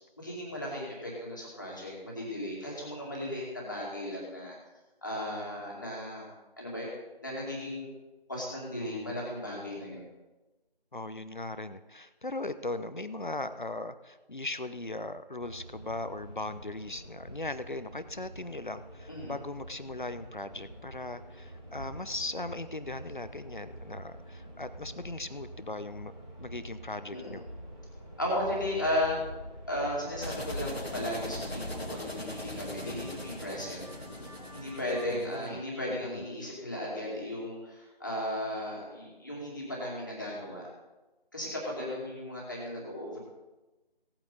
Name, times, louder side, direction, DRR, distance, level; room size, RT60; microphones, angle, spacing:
voice 1, 0.2-4.5 5.0-6.3 6.6-6.9 7.2-7.9 8.3-10.1 19.1-19.4 27.1-27.4 28.2-29.2 29.7-33.9 34.5-40.6 41.3-43.2, left 1 dB, 20° left, -4 dB, 2.3 m, -35 dB
voice 2, 8.8-9.2 10.9-26.1 26.4-27.4 35.1-35.6 36.0-36.2, left 2 dB, 50° left, 12 dB, 0.8 m, -38 dB
sound 1, 15.4-31.8, equal, 10° right, 2.0 m, -45 dB
sound 2, 30.2-35.5, left 1 dB, 80° left, 1.7 m, -41 dB
sound 3, 30.5-35.2, right 1 dB, 35° right, 2.7 m, -53 dB
17.5 x 8.8 x 4.0 m, 1.1 s
figure-of-eight pair, 170°, 30 cm